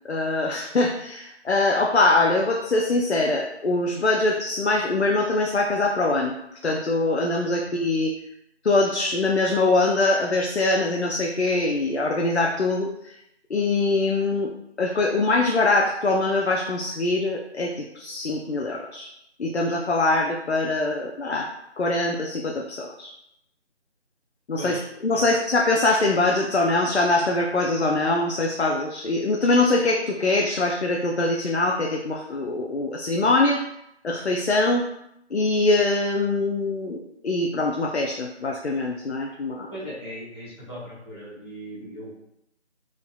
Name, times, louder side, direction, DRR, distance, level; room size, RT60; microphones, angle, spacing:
voice 1, 0.0-6.3 6.6-8.1 8.6-12.9 13.5-14.5 14.8-19.1 19.4-21.5 21.8-23.1 24.5-33.6 34.0-34.9 35.3-39.7, left 2 dB, 70° left, 0 dB, 0.6 m, -23 dB
voice 2, 7.4-7.7 24.6-24.9 25.1-25.2 39.7-42.3, equal, 20° left, -11 dB, 1.5 m, -38 dB
4.8 x 3.6 x 2.3 m, 0.80 s
figure-of-eight pair, 180°, 35 cm